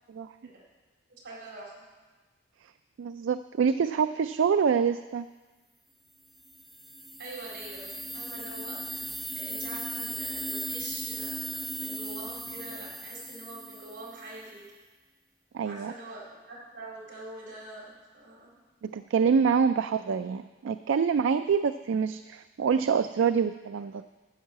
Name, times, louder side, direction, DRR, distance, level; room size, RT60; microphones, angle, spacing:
voice 1, 1.2-1.8 7.2-9.0 9.3-14.6 15.6-18.5, right 2 dB, 70° right, -4 dB, 4.3 m, -44 dB
voice 2, 3.0-5.3 15.5-15.9 18.8-24.0, right 6 dB, 85° right, 11 dB, 0.3 m, -26 dB
sound 1, 6.4-14.3, right 1 dB, ahead, 0.7 m, -37 dB
12.0 x 5.6 x 8.5 m, 1.3 s
head